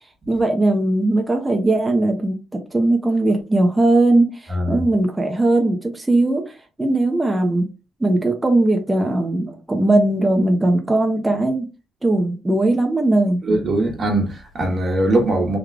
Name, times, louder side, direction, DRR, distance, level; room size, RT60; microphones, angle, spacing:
voice 1, 0.3-2.4 2.7-7.7 8.0-11.7 12.0-13.4, right 2 dB, 15° right, 0.7 m, -19 dB
voice 2, 4.5-4.8 13.4-15.6, right 1 dB, 45° right, 1.3 m, -21 dB
3.6 x 2.3 x 3.3 m
cardioid pair, 90°, 0 cm